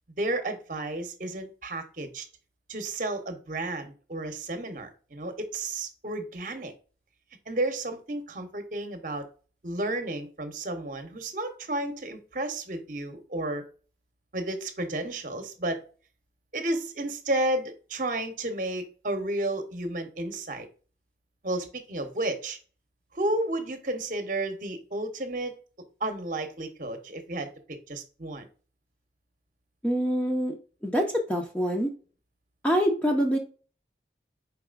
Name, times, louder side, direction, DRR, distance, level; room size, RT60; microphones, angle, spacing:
voice 1, 0.2-2.3 2.7-6.7 7.5-9.3 9.6-13.6 14.3-15.8 16.5-20.7 21.4-22.6 23.1-25.5 26.0-28.5, right 1 dB, 45° right, 7 dB, 0.8 m, -32 dB
voice 2, 29.8-30.5 30.8-31.9 32.6-33.4, equal, 10° left, 1 dB, 0.6 m, -25 dB
4.7 x 4.1 x 2.4 m, 0.38 s
head